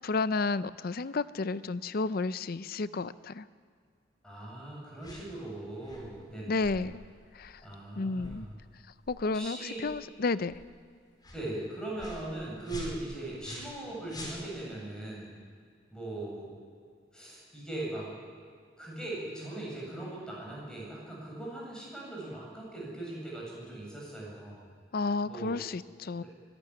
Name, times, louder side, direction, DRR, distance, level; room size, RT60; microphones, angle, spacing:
voice 1, 0.0-3.5 6.5-7.0 7.3-7.6 8.0-8.5 9.1-10.6 24.9-26.2, left 3 dB, 55° left, 15 dB, 0.5 m, -32 dB
voice 2, 4.2-6.8 7.6-8.5 9.3-9.8 11.3-15.4 15.9-16.5 17.1-18.1 18.8-24.7 25.3-25.5, right 2 dB, 5° left, -4 dB, 7.4 m, -40 dB
sound 1, 5.0-5.3 5.8-6.1 6.6-6.8 7.4-7.6 8.2-8.4 9.0-9.2 9.8-10.0 10.5-10.6 11.2-11.4 12.0-12.3 12.6-13.8 14.1-14.8, equal, 25° left, 4.8 m, -44 dB
24.0 x 11.5 x 9.9 m, 2.1 s
head